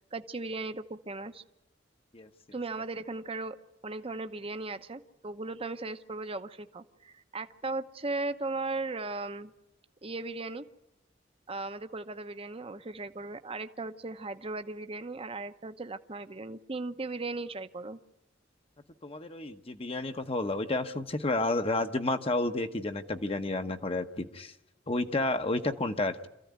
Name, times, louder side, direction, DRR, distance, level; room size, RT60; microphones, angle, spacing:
voice 1, 0.1-1.4 2.5-3.6 3.8-9.5 10.0-10.6 11.5-18.0, right 3 dB, 30° right, 9 dB, 0.9 m, -37 dB
voice 2, 19.0-24.5 24.9-26.3, left 2 dB, 30° left, 7 dB, 1.0 m, -31 dB
26.5 x 15.0 x 9.5 m, 0.91 s
head